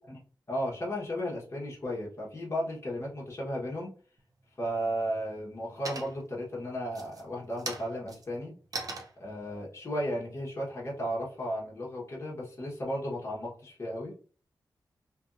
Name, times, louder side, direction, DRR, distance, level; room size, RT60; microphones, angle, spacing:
voice 1, 0.5-3.9 4.6-8.5 9.2-14.1, equal, 35° left, -4 dB, 1.0 m, -34 dB
sound 1, 4.2-4.8 5.2-5.6 5.8-6.4 6.9-11.3, right 3 dB, 55° right, 0.7 m, -41 dB
2.7 x 2.6 x 2.4 m, 0.41 s
cardioid pair, 70°, 8 cm